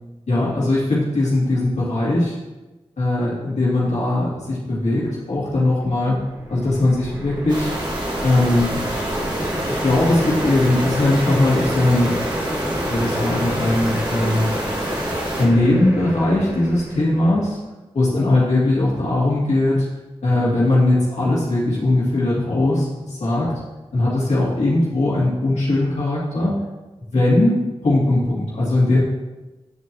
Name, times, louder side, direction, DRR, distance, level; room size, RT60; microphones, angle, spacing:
voice 1, 0.3-2.4 3.0-7.7 8.2-8.8 9.7-12.1 12.9-14.6 14.9-15.0 15.4-17.6 17.9-19.9 20.2-23.5 23.9-26.6 27.1-29.0, left 2 dB, 85° left, -8 dB, 2.1 m, -19 dB
sound 1, 6.2-17.5, equal, 25° right, 1.3 m, -28 dB
sound 2, 7.5-15.5, right 1 dB, 40° right, 1.8 m, -28 dB
9.1 x 4.4 x 2.7 m, 1.1 s
wide cardioid pair, 60°, 11 cm